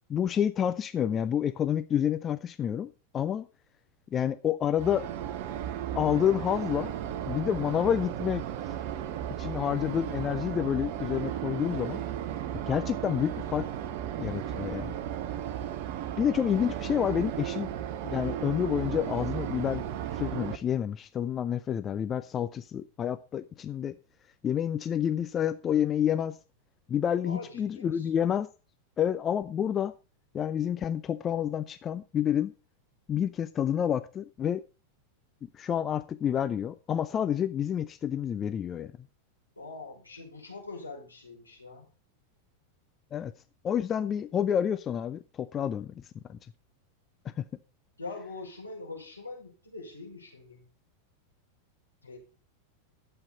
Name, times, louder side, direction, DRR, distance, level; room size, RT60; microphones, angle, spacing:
voice 1, 0.1-3.4 4.1-5.1 5.9-6.9 7.3-8.4 9.4-12.0 12.7-13.7 14.2-15.0 16.2-17.7 18.0-19.8 20.1-23.9 24.4-26.4 26.9-28.5 29.0-29.9 30.3-32.5 33.1-34.6 35.5-38.9 43.1-43.3 43.6-46.0 46.3-46.4 47.4-47.5, left 9 dB, 25° left, 12 dB, 0.6 m, -29 dB
sound 1, 4.8-20.6, right 10 dB, 50° right, 1.0 m, -35 dB
voice 2, 27.2-28.1 39.6-41.9 48.0-50.6 52.0-52.2, left 3 dB, 80° left, -2 dB, 5.7 m, -43 dB
13.0 x 8.0 x 4.0 m, 0.34 s
figure-of-eight pair, 90°, 0 cm